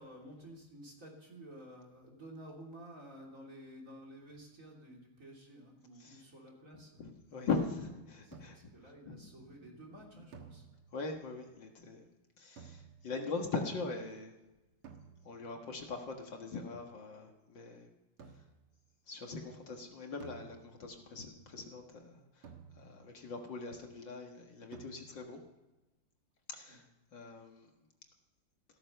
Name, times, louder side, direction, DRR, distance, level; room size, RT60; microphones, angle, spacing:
voice 1, 0.0-7.0 8.2-10.7 26.7-26.8, right 1 dB, 35° right, -1 dB, 3.5 m, -52 dB
voice 2, 7.0-8.6 9.1-9.3 10.2-10.3 10.9-12.1 12.4-14.3 15.3-17.9 19.1-22.5 22.8-25.4 26.5-26.8 27.1-27.7, left 4 dB, 60° left, 2 dB, 2.3 m, -41 dB
sound 1, 8.3-8.9 10.3-11.2 12.6-13.3 14.8-15.6 18.2-18.7 20.2-21.1 22.4-23.2 24.7-25.4, right 6 dB, 75° right, 2.4 m, -55 dB
15.0 x 14.0 x 6.8 m, 1.0 s
omnidirectional pair, 2.4 m